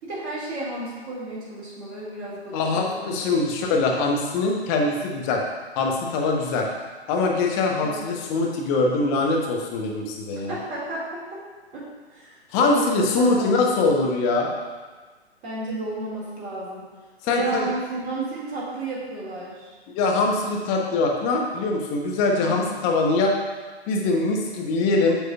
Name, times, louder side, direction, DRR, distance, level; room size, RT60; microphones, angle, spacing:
voice 1, 0.0-3.5 7.8-8.1 10.3-11.4 11.7-11.9 12.1-13.6 15.4-16.9 17.3-19.7 22.4-22.6, right 2 dB, 25° right, -7 dB, 1.9 m, -32 dB
voice 2, 2.5-5.4 5.7-6.7 7.1-10.5 12.5-14.5 17.2-17.7 19.9-23.3 23.9-25.2, left 3 dB, 20° left, 1 dB, 0.9 m, -23 dB
8.7 x 6.5 x 2.3 m, 1.4 s
figure-of-eight pair, 125°, 34 cm